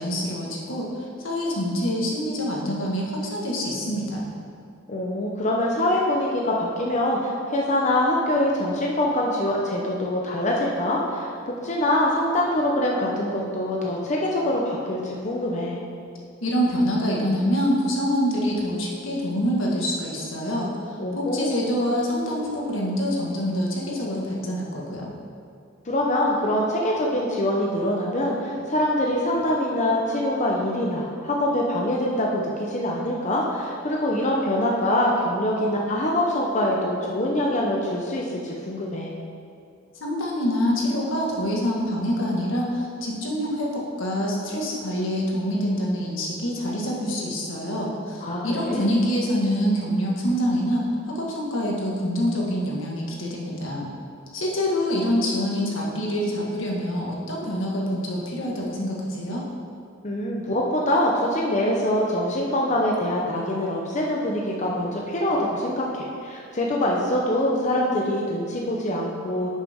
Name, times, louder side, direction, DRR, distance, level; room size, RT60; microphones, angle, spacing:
voice 1, 0.0-4.3 16.4-25.1 40.0-53.9 54.3-59.5, equal, 80° left, -3 dB, 1.6 m, -26 dB
voice 2, 4.9-15.8 21.0-21.6 25.9-39.1 48.2-48.9 60.0-69.5, left 1 dB, 40° left, -2 dB, 0.8 m, -24 dB
10.5 x 6.4 x 3.6 m, 2.4 s
head